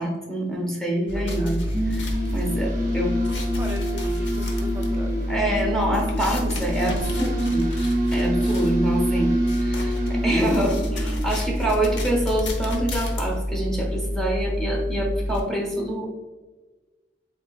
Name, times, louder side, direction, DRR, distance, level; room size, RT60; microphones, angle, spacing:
voice 1, 0.0-1.6 1.9-3.1 5.3-7.7 8.1-16.1, right 1 dB, 5° left, -1 dB, 0.9 m, -26 dB
sound 1, 1.1-15.4, equal, 80° left, 0.8 m, -28 dB
voice 2, 1.1-1.8 2.9-5.6, right 1 dB, 15° right, 0 dB, 0.3 m, -39 dB
sound 2, 1.6-12.0, equal, 45° right, 1.0 m, -27 dB
7.7 x 2.9 x 2.4 m, 1.2 s
head